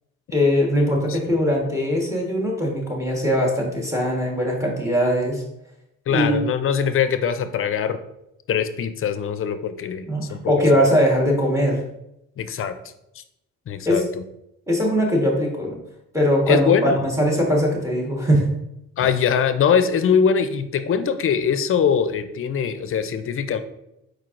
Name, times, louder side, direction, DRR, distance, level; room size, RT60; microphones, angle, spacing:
voice 1, 0.3-5.4 6.1-6.4 10.1-11.8 13.8-14.0 14.7-15.8 16.1-18.5, equal, 10° right, -1 dB, 1.3 m, -21 dB
voice 2, 6.1-8.0 8.5-10.8 12.4-12.8 13.2-13.3 13.7-14.2 16.5-17.0 19.0-23.6, left 7 dB, 45° left, 10 dB, 0.5 m, -22 dB
4.7 x 4.4 x 2.5 m, 0.84 s
cardioid pair, 90°, 30 cm